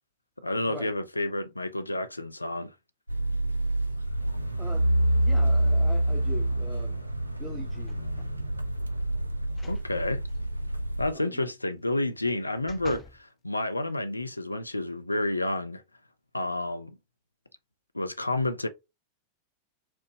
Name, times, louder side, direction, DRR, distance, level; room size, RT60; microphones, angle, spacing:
voice 1, 0.4-2.7 9.7-10.2 11.0-15.8 16.3-17.0 17.9-18.7, left 1 dB, 85° left, 0.4 m, -30 dB
sound 1, 3.1-11.1, right 1 dB, 85° right, 0.4 m, -27 dB
voice 2, 4.6-4.9 5.1-7.0 7.4-8.1 11.1-11.5, left 1 dB, 5° left, 0.9 m, -42 dB
sound 2, 7.8-8.4 9.5-9.9 10.3-10.4 12.0-13.2 13.8-13.9, left 4 dB, 20° left, 0.5 m, -48 dB
4.4 x 2.0 x 2.8 m
figure-of-eight pair, 90°, 0 cm